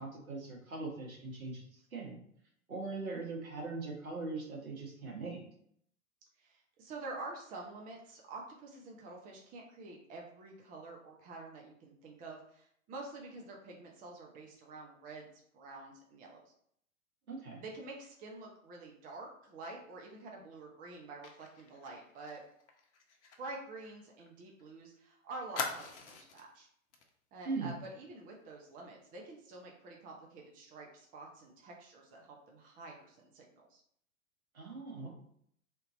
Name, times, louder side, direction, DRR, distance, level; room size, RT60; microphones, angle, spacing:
voice 1, 0.0-1.6 1.9-2.2 2.7-5.4 17.3-17.6 27.4-27.7 34.5-35.1, right 3 dB, 75° right, -2 dB, 1.6 m, -40 dB
voice 2, 6.4-15.3 15.5-16.5 17.6-22.4 23.4-26.7 27.3-33.8, right 2 dB, 20° right, -1 dB, 0.8 m, -48 dB
Fire, 21.2-24.7 24.9-25.0 25.5-26.5 26.9-27.1 27.4-27.7, left 4 dB, 55° left, 0.9 m, -43 dB
3.6 x 2.8 x 3.8 m, 0.68 s
figure-of-eight pair, 110°, 42 cm